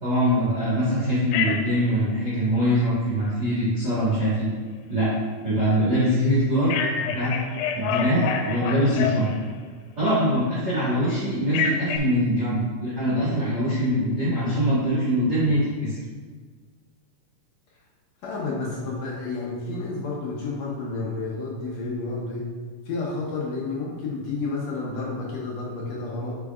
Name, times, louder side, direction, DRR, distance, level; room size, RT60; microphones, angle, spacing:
voice 1, 0.0-4.5 4.9-5.1 5.4-7.3 7.7-9.3 10.0-16.0, equal, 40° right, -11 dB, 1.8 m, -23 dB
Telephone, 1.3-1.8 6.7-9.6 11.5-12.0, left 6 dB, 90° left, 2.3 m, -27 dB
voice 2, 18.2-22.5 22.9-26.4, left 3 dB, 75° left, -4 dB, 1.6 m, -30 dB
8.3 x 5.0 x 2.4 m, 1.5 s
omnidirectional pair, 3.9 m